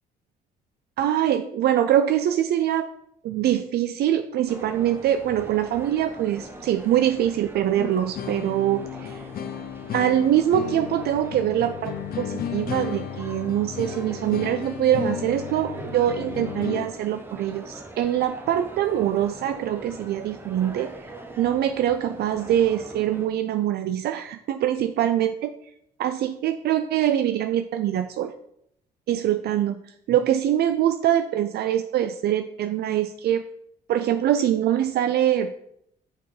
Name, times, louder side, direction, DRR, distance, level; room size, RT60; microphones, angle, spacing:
voice 1, 1.0-2.9 3.2-9.3 9.9-20.9 21.4-25.5 26.0-28.3 29.1-29.8 30.1-33.4 33.9-35.5, right 11 dB, 65° right, 9 dB, 0.4 m, -23 dB
sound 1, 4.5-23.3, right 2 dB, 10° right, 0.9 m, -42 dB
sound 2, 7.8-16.9, left 9 dB, 60° left, 0.6 m, -34 dB
5.6 x 4.4 x 4.9 m, 0.74 s
cardioid pair, 95°, 18 cm